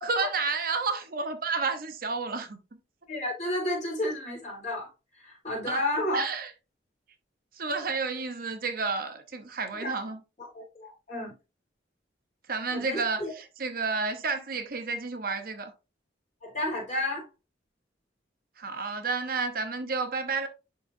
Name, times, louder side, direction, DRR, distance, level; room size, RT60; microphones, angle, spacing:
voice 1, 0.0-2.6 5.7-5.8 6.1-6.5 7.5-10.2 12.5-15.7 18.6-20.5, right 4 dB, 50° right, 0.8 m, -31 dB
voice 2, 3.1-4.9 5.1-6.2 9.8-10.0 10.5-11.3 12.7-13.3 16.4-17.3, left 1 dB, 40° left, 4.1 m, -31 dB
11.0 x 3.8 x 2.6 m
head